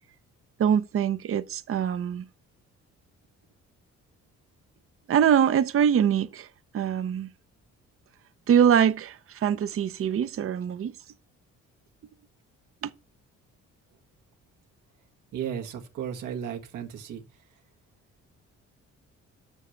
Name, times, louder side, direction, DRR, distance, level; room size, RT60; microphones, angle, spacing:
voice 1, 0.6-2.2 5.1-6.5 6.7-7.3 8.5-10.9 12.8-12.9, right 8 dB, 45° right, 0.7 m, -23 dB
voice 2, 15.3-17.2, right 8 dB, 85° right, 1.7 m, -34 dB
7.3 x 6.4 x 5.7 m
cardioid pair, 90°, 30 cm